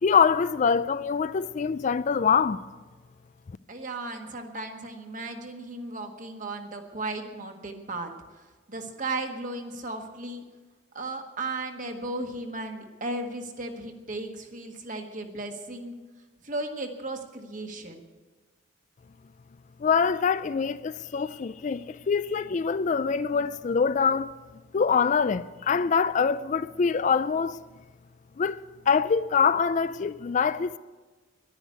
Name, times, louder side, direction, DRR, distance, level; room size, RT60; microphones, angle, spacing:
voice 1, 0.0-2.6 19.8-24.3 24.7-27.6 28.4-30.8, left 6 dB, 40° left, 0.3 m, -24 dB
voice 2, 3.7-10.4 10.9-15.9 16.4-18.1, right 2 dB, 40° right, 1.6 m, -35 dB
11.5 x 10.0 x 9.4 m
head